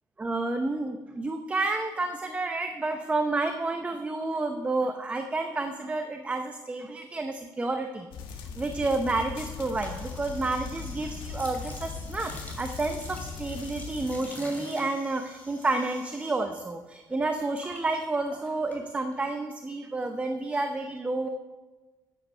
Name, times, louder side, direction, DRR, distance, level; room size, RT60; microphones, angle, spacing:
voice 1, 0.2-21.3, right 2 dB, 15° right, 6 dB, 0.7 m, -30 dB
sound 1, 8.1-14.2, left 5 dB, 85° left, 1.5 m, -39 dB
sound 2, 9.7-16.6 16.9-19.3, left 1 dB, 20° left, 2.7 m, -47 dB
13.5 x 8.8 x 5.5 m, 1.2 s
cardioid pair, 135°, 8 cm